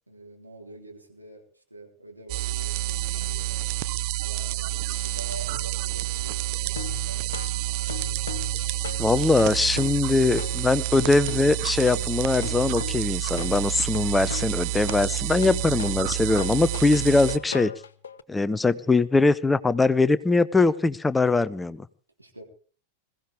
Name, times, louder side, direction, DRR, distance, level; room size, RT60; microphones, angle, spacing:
voice 1, 0.1-3.6 4.2-7.7 22.2-22.4, right 2 dB, 85° right, 3.5 m, -46 dB
sound 1, 2.3-17.4, right 15 dB, 45° right, 0.8 m, -29 dB
sound 2, 6.7-18.2, left 8 dB, 65° left, 1.0 m, -38 dB
voice 2, 9.0-17.7 18.3-21.9, left 3 dB, 10° left, 0.7 m, -22 dB
21.0 x 16.0 x 3.6 m
figure-of-eight pair, 90°, 0 cm